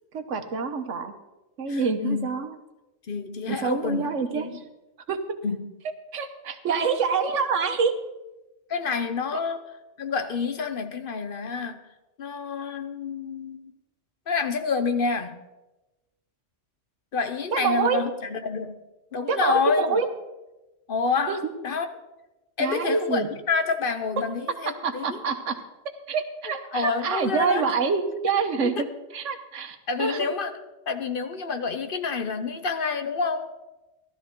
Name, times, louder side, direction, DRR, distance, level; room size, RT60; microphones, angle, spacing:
voice 1, 0.1-1.1 1.6-2.5 3.5-4.5 5.1-5.2 6.1-7.9 17.5-18.0 19.3-20.1 21.3-21.4 22.6-23.3 24.8-25.6 26.1-28.9 29.1-30.3, right 5 dB, 85° right, 7 dB, 1.3 m, -26 dB
voice 2, 1.7-2.3 3.1-4.1 4.3-4.6 5.4-5.7 8.7-9.6 10.0-11.8 12.2-13.7 14.3-15.4 17.1-18.8 19.1-20.0 20.9-21.9 22.6-25.2 26.4-27.7 28.6-28.8 29.9-30.5 30.9-33.5, left 5 dB, 50° left, 9 dB, 0.9 m, -28 dB
15.5 x 12.0 x 3.8 m, 1.0 s
omnidirectional pair, 1.2 m